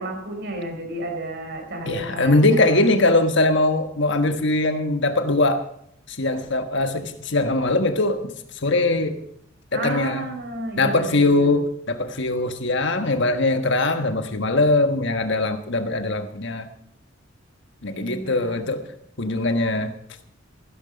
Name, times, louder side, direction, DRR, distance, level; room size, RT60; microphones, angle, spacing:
voice 1, 0.0-2.9 9.7-11.6 17.9-18.7, right 1 dB, 60° right, 4 dB, 4.3 m, -32 dB
voice 2, 1.9-5.6 6.2-8.2 8.6-9.2 9.7-10.3 10.8-16.7 17.8-18.8 19.2-19.9, left 2 dB, 65° left, 8 dB, 1.4 m, -21 dB
15.0 x 12.5 x 5.2 m, 0.70 s
head